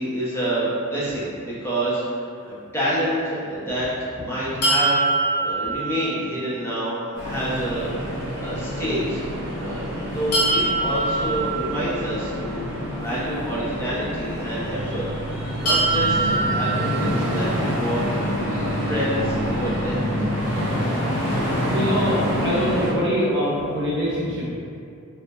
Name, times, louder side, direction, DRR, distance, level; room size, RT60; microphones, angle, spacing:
voice 1, 0.0-7.9 8.4-9.2 9.5-9.9 10.1-15.1 15.6-18.1 18.5-20.3, right 1 dB, 10° left, -9 dB, 0.6 m, -28 dB
sound 1, 4.6-6.6 10.3-12.4 15.7-17.7, right 3 dB, 75° left, 0.6 m, -24 dB
sound 2, 7.1-22.9, equal, 10° right, 0.9 m, -27 dB
sound 3, 14.6-23.1, equal, 30° left, 1.2 m, -32 dB
voice 2, 21.6-24.5, equal, 55° right, -7 dB, 0.7 m, -24 dB
2.9 x 2.0 x 2.2 m, 2.5 s
head